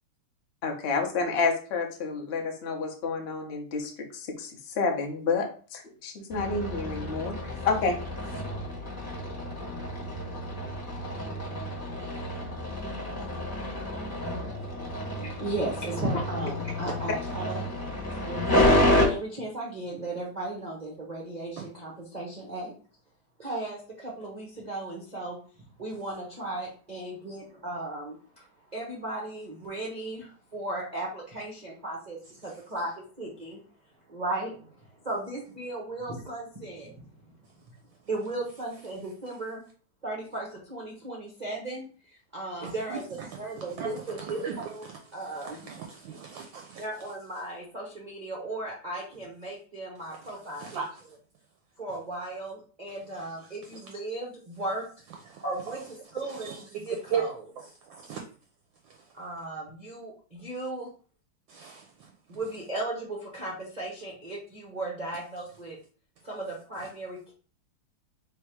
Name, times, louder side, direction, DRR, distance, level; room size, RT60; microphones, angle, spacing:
voice 1, 0.6-8.0, left 4 dB, 70° left, 0.6 m, -29 dB
sound 1, 6.3-19.0, left 1 dB, 15° left, 1.0 m, -29 dB
voice 2, 15.2-17.6 18.2-18.4 19.1-22.7 23.4-25.4 25.8-28.4 28.7-32.9 33.2-33.6 34.1-37.1 38.1-39.6 40.0-43.0 43.4-45.7 46.8-50.8 51.8-54.8 55.4-55.8 56.1-57.4 59.1-60.9 62.3-65.8 66.2-67.3, right 2 dB, 45° right, 0.5 m, -36 dB
voice 3, 42.9-43.3 43.8-44.5 45.3-46.8 50.6-50.9 55.3-55.4 56.2-56.6 57.1-57.2 57.9-58.2 61.5-61.9, right 7 dB, 75° right, 1.2 m, -36 dB
3.5 x 3.0 x 4.5 m
omnidirectional pair, 2.4 m